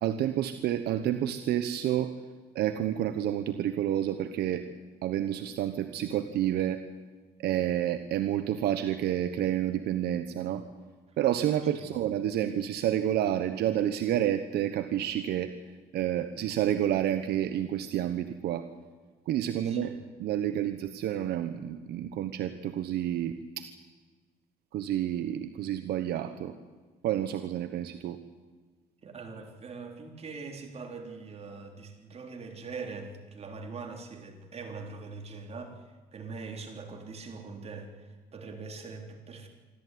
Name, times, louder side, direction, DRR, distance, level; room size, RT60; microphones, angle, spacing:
voice 1, 0.0-2.1 2.5-4.6 5.0-6.8 7.4-10.6 11.2-15.5 15.9-18.7 19.3-23.7 24.7-26.5 27.0-28.2, right 11 dB, 70° right, 9 dB, 1.2 m, -29 dB
voice 2, 19.6-20.0 29.0-39.5, right 4 dB, 40° right, 3 dB, 3.8 m, -42 dB
25.5 x 13.5 x 9.4 m, 1.4 s
cardioid pair, 110°, 17 cm